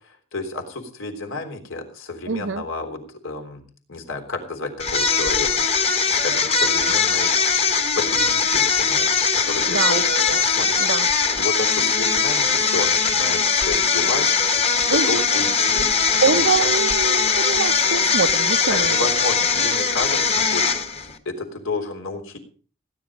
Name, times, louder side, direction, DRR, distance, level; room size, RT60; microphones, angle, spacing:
voice 1, 0.3-3.6 3.9-5.6 6.2-7.3 8.0-10.0 10.4-10.8 11.4-16.7 18.7-20.6 20.9-22.4, left 2 dB, 85° left, 3.6 m, -31 dB
voice 2, 2.3-2.6 9.7-10.4 10.8-11.1 14.9-15.3 16.2-19.1, right 5 dB, 65° right, 0.6 m, -24 dB
sound 1, 4.8-21.1, left 5 dB, 30° left, 1.3 m, -20 dB
18.0 x 10.5 x 5.1 m
head